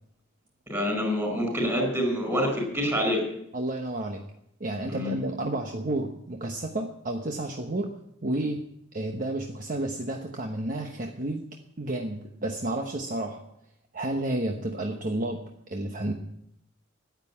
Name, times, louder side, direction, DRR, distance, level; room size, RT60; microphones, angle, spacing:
voice 1, 0.7-3.3 4.9-5.1, equal, 15° right, 1 dB, 4.9 m, -26 dB
voice 2, 3.5-4.2 4.6-8.6 8.9-11.4 11.8-13.4 13.9-16.1, right 1 dB, 45° right, 3 dB, 1.1 m, -31 dB
10.5 x 9.3 x 8.6 m, 0.75 s
head